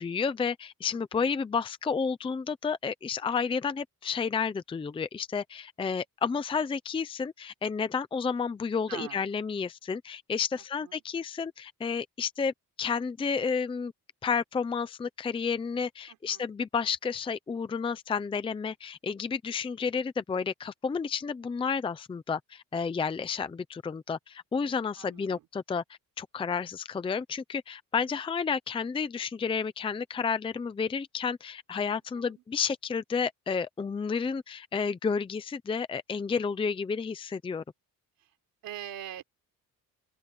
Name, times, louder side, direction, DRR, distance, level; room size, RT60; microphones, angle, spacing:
voice 1, 0.0-12.5 12.8-13.9 14.2-25.8 26.2-37.6, left 5 dB, 15° left, 0.5 m, -31 dB
voice 2, 0.9-1.4 8.9-9.2 10.8-11.0 16.1-16.5 24.9-25.5 31.9-32.4 38.2-38.3 38.6-39.2, right 12 dB, 90° right, 3.9 m, -44 dB
open air
cardioid pair, 180°, 34 cm